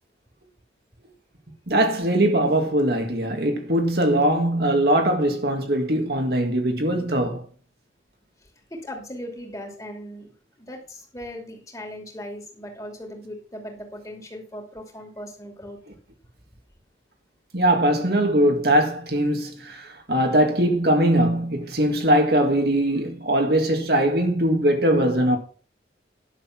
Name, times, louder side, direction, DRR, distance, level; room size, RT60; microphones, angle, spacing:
voice 1, 1.7-7.5 17.5-25.4, right 1 dB, 60° right, 2.0 m, -21 dB
voice 2, 8.4-10.3 10.6-15.8, equal, 20° left, 2.8 m, -38 dB
11.0 x 7.0 x 5.9 m
head